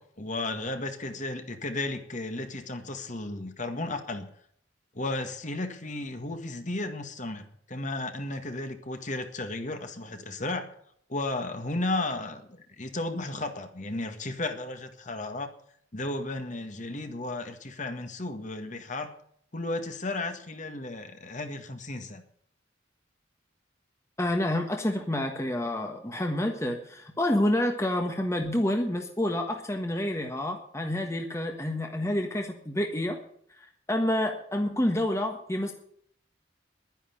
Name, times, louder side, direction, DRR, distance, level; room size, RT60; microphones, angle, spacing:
voice 1, 0.0-4.3 4.9-10.7 11.1-15.5 15.9-19.1 19.5-22.2, left 2 dB, 40° left, 7 dB, 1.8 m, -34 dB
voice 2, 24.2-33.2 33.9-35.7, left 1 dB, 15° left, 3 dB, 1.4 m, -28 dB
11.5 x 10.0 x 8.5 m, 0.64 s
head